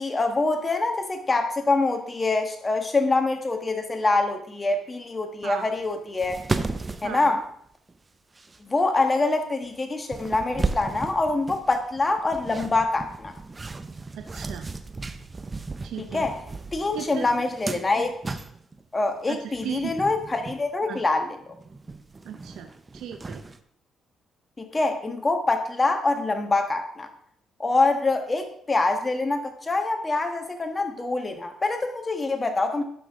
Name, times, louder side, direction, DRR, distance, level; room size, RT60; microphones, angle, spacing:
voice 1, 0.0-6.4 7.0-7.4 8.6-13.3 16.0-16.3 16.7-18.1 18.9-21.3 24.6-27.1 27.6-32.8, left 3 dB, 25° left, 5 dB, 1.4 m, -25 dB
sound 1, 5.9-6.0 6.2-8.0 8.4-8.6 9.6-9.7 10.1-18.9 19.5-20.6 21.0-21.1 21.4-23.6, right 3 dB, 25° right, 0.6 m, -35 dB
voice 2, 7.0-7.4 14.1-14.7 15.8-16.3 16.9-17.3 19.3-19.9 20.9-21.0 22.2-23.4, right 9 dB, 80° right, 7 dB, 0.6 m, -36 dB
11.5 x 5.7 x 3.6 m, 0.66 s
cardioid pair, 90°, 0 cm